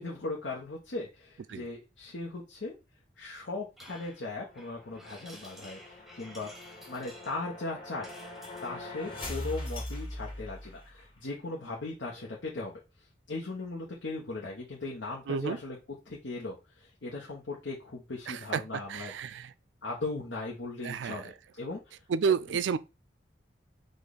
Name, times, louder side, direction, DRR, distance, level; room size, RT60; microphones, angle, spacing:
voice 1, 0.0-2.7 3.2-6.5 6.9-8.1 8.6-12.8 13.3-15.8 16.1-19.4 19.8-21.8, left 3 dB, 80° left, 1.1 m, -38 dB
sound 1, 3.8-8.9, equal, ahead, 0.8 m, -53 dB
sound 2, 4.4-11.1, left 1 dB, 30° left, 2.0 m, -42 dB
voice 2, 15.3-15.6 18.3-19.5 20.8-21.3 22.1-22.8, right 6 dB, 75° right, 0.3 m, -31 dB
5.2 x 2.5 x 4.0 m
head